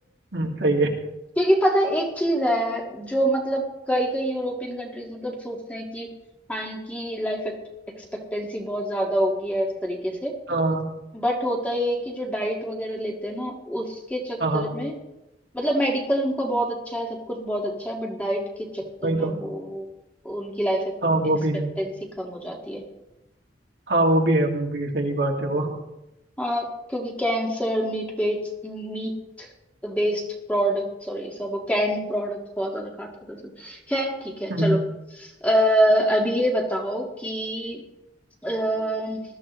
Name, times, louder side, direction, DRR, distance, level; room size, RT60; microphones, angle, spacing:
voice 1, 0.3-0.9 10.5-10.9 14.4-14.7 19.0-19.3 21.0-21.7 23.9-25.7 34.5-34.8, right 2 dB, 70° right, 0 dB, 2.2 m, -22 dB
voice 2, 1.4-6.1 6.5-7.5 8.0-10.3 11.1-14.9 15.5-19.9 20.2-20.8 21.8-21.9 22.2-22.8 26.4-29.5 29.8-34.8 35.2-37.8 38.4-39.2, equal, 10° left, 0 dB, 1.7 m, -26 dB
20.0 x 13.0 x 3.1 m, 0.95 s
head